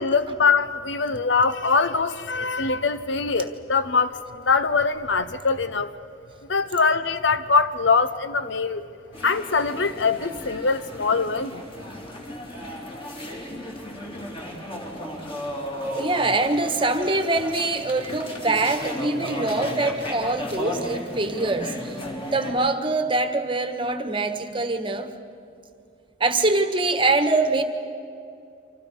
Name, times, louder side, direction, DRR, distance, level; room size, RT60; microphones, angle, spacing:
voice 1, 0.0-5.9 6.5-8.8 9.2-11.6, left 4 dB, 75° left, 12 dB, 0.9 m, -23 dB
sound 1, 9.1-22.5, equal, 30° left, 3.4 m, -34 dB
voice 2, 15.8-22.0 22.3-25.1 26.2-27.6, right 2 dB, 25° right, 7 dB, 1.3 m, -24 dB
29.0 x 25.5 x 5.4 m, 2.4 s
head